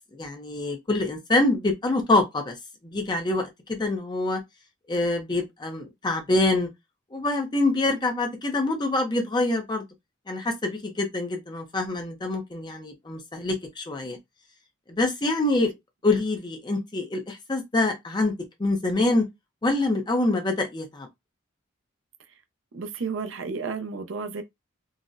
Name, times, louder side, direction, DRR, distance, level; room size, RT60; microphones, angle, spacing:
voice 1, 0.1-2.5 2.9-4.4 4.9-6.7 7.1-9.8 10.3-14.2 14.9-15.7 16.0-18.3 18.6-19.3 19.6-21.1, left 2 dB, 20° left, 0.5 m, -25 dB
voice 2, 22.7-24.4, right 4 dB, 75° right, 0.5 m, -32 dB
3.9 x 2.1 x 2.4 m
head